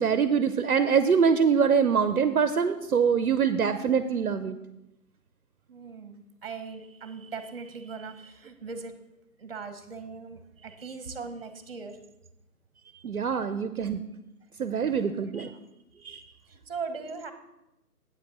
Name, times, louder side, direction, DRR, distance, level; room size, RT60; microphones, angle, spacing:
voice 1, 0.0-4.6 13.0-14.0 14.6-15.5 16.0-16.2, right 6 dB, 65° right, 11 dB, 0.7 m, -24 dB
voice 2, 5.7-8.9 9.4-12.0 14.7-15.1 16.5-17.3, right 5 dB, 40° right, 10 dB, 1.0 m, -39 dB
8.4 x 5.2 x 6.8 m, 0.91 s
figure-of-eight pair, 155°, 46 cm